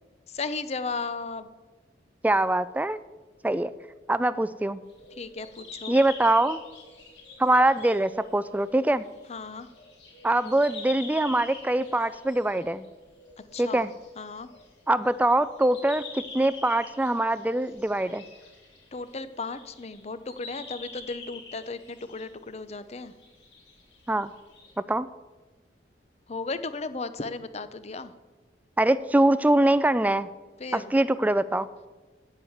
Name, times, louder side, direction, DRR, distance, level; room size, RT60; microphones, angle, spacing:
voice 1, 0.3-1.5 5.1-6.0 9.3-9.7 13.5-13.9 14.2-14.5 18.9-23.1 26.3-28.1 30.6-30.9, left 3 dB, 35° left, 13 dB, 0.6 m, -35 dB
voice 2, 2.2-3.0 3.4-3.7 4.1-4.8 5.9-6.6 7.4-9.1 10.2-12.8 13.6-13.9 14.9-18.2 24.1-24.3 24.9-25.1 28.8-30.3 30.7-31.7, right 1 dB, 10° right, 15 dB, 0.3 m, -23 dB
sound 1, 4.9-20.0 20.3-22.2 22.8-24.7, left 4 dB, 85° left, 3.6 m, -46 dB
9.7 x 8.2 x 7.2 m, 1.3 s
head